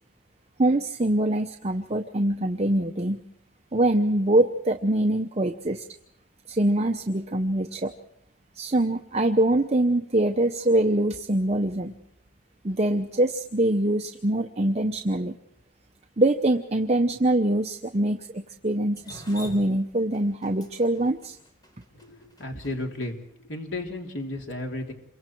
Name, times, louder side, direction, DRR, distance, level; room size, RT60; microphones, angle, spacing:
voice 1, 0.6-3.2 3.7-5.9 6.5-7.9 8.6-11.9 12.6-15.3 16.2-21.4, right 1 dB, 35° right, 6 dB, 0.7 m, -24 dB
Drip, 19.0-23.1, left 1 dB, 20° left, 4.3 m, -45 dB
voice 2, 22.0-23.1 23.4-24.9, left 1 dB, 75° left, 1 dB, 3.2 m, -33 dB
28.0 x 24.0 x 4.6 m, 0.73 s
head